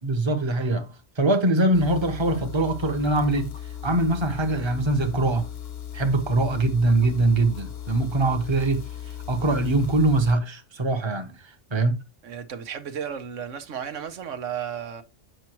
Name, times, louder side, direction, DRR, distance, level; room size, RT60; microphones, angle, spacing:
voice 1, 0.0-0.9 1.2-3.5 3.8-5.5 5.9-8.8 9.3-11.3 11.7-12.0, right 2 dB, 25° right, 1.0 m, -22 dB
sound 1, 1.7-10.3, left 10 dB, 60° left, 1.0 m, -37 dB
voice 2, 12.2-15.0, right 8 dB, 80° right, 1.2 m, -34 dB
7.8 x 5.9 x 3.0 m
omnidirectional pair, 1.3 m